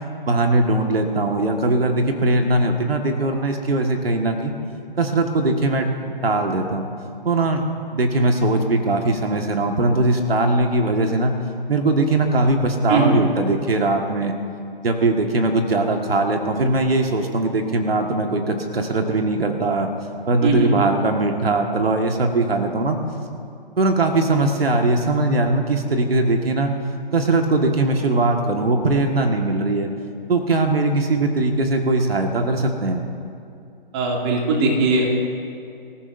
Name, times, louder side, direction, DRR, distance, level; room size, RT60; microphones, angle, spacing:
voice 1, 0.2-4.5 5.0-5.9 6.2-6.9 7.2-7.6 7.9-11.3 11.7-14.3 14.8-19.9 20.3-23.0 23.8-26.7 27.1-29.9 30.3-33.0, right 2 dB, 85° right, 3 dB, 1.7 m, -20 dB
voice 2, 20.4-20.7 33.9-35.1, right 3 dB, 30° right, -1 dB, 2.5 m, -19 dB
25.5 x 14.5 x 2.6 m, 2.4 s
hypercardioid pair, 150°, 29 cm